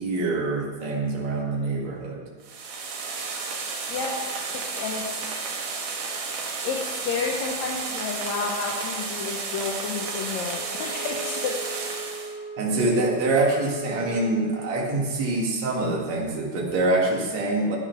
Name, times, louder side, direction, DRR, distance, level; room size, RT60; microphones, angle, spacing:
voice 1, 0.0-2.2 12.6-17.8, right 2 dB, 60° right, -2 dB, 3.1 m, -25 dB
sound 1, 2.4-12.3, right 4 dB, 75° right, 3.1 m, -32 dB
voice 2, 4.8-5.3 6.6-11.6, left 5 dB, 70° left, -1 dB, 2.2 m, -30 dB
Wind instrument woodwind instrument, 10.5-14.7, right 4 dB, 50° left, 5.9 m, -38 dB
13.0 x 8.9 x 5.9 m, 1.5 s
omnidirectional pair, 3.6 m